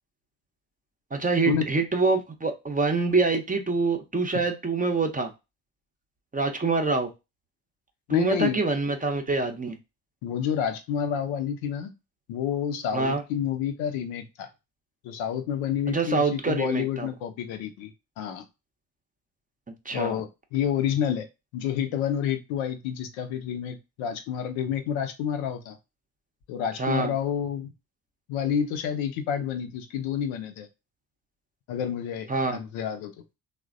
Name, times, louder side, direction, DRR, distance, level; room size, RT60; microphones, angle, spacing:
voice 1, 1.1-5.3 6.3-7.1 8.1-9.8 12.9-13.2 15.9-17.1 19.8-20.2 26.8-27.1 32.3-32.6, right 3 dB, 15° right, 4 dB, 0.6 m, -25 dB
voice 2, 8.1-8.6 10.2-11.9 12.3-14.5 15.0-17.9 18.2-18.4 19.9-21.3 21.5-25.8 26.5-27.7 28.3-30.7 31.7-33.1, left 8 dB, 70° left, 7 dB, 0.6 m, -29 dB
3.1 x 2.1 x 2.4 m, 0.24 s
hypercardioid pair, 40°, 49 cm